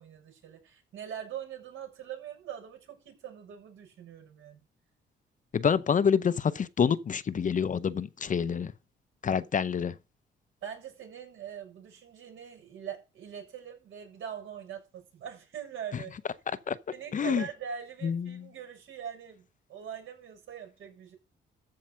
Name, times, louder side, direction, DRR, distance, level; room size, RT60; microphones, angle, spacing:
voice 1, 0.0-4.6 10.6-16.1 16.9-21.1, right 8 dB, 80° right, 7.0 m, -42 dB
voice 2, 5.5-8.7 9.2-9.9 16.7-16.8 17.1-17.4 18.0-18.5, left 7 dB, 40° left, 0.7 m, -27 dB
14.0 x 4.8 x 5.7 m
cardioid pair, 90°, 20 cm